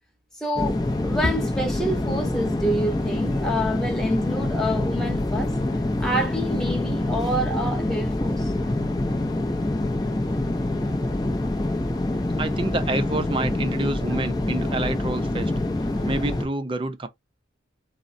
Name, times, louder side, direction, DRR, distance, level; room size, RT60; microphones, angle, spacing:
voice 1, 0.4-5.6 6.0-8.5, equal, 5° left, 0.9 m, -27 dB
sound 1, 0.6-16.5, left 1 dB, 20° left, 0.5 m, -26 dB
voice 2, 12.4-15.5 16.0-17.1, right 2 dB, 25° right, 0.5 m, -28 dB
3.7 x 2.1 x 2.5 m
head